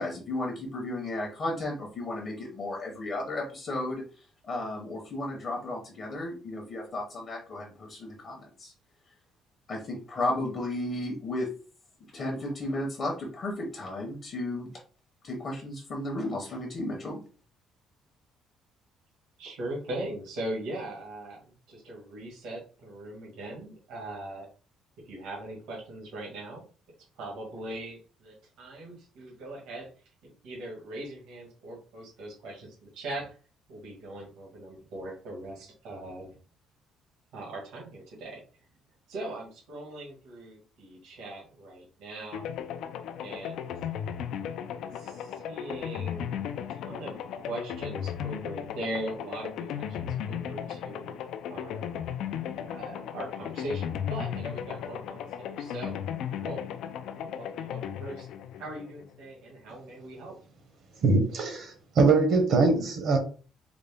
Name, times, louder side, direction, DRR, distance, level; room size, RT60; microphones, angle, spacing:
voice 1, 0.0-4.0 4.4-8.7 9.7-11.5 12.1-14.7 15.2-17.2, left 1 dB, 30° left, -1 dB, 0.8 m, -34 dB
voice 2, 19.4-24.5 25.0-26.6 27.2-29.9 30.2-33.4 33.7-36.3 37.3-38.4 39.1-42.5 43.2-43.7 44.6-46.3 46.7-51.1 51.5-51.9 52.7-56.0 56.4-56.6 57.1-58.3 58.6-60.4, right 1 dB, 80° right, -3 dB, 1.5 m, -40 dB
sound 1, 42.3-59.2, left 9 dB, 65° left, 0.4 m, -36 dB
voice 3, 61.0-63.2, right 3 dB, 50° right, 3 dB, 0.9 m, -22 dB
3.9 x 2.1 x 3.4 m, 0.38 s
cardioid pair, 175°, 0 cm